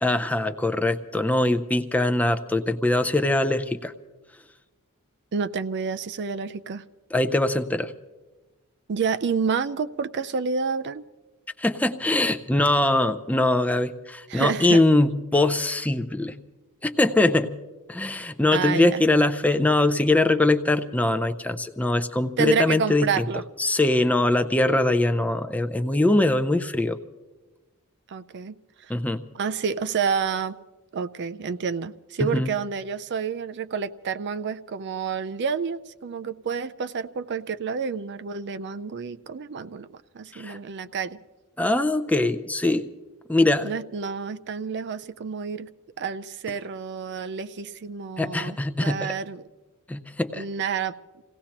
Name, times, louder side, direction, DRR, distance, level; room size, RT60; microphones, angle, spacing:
voice 1, 0.0-3.9 7.1-7.9 11.6-16.3 16.8-17.5 17.9-23.3 23.6-27.0 28.9-29.2 32.2-32.5 40.3-40.6 41.6-42.8 43.3-43.7 48.2-49.1 49.9-50.4, left 2 dB, 5° left, 8 dB, 0.5 m, -22 dB
voice 2, 5.3-6.8 8.9-11.0 14.3-14.8 18.5-19.0 22.4-23.4 28.1-28.9 29.3-30.6 30.9-41.2 43.6-45.7 46.0-49.4 50.3-50.9, right 6 dB, 50° right, 11 dB, 0.5 m, -29 dB
27.0 x 17.5 x 2.9 m, 1.2 s
head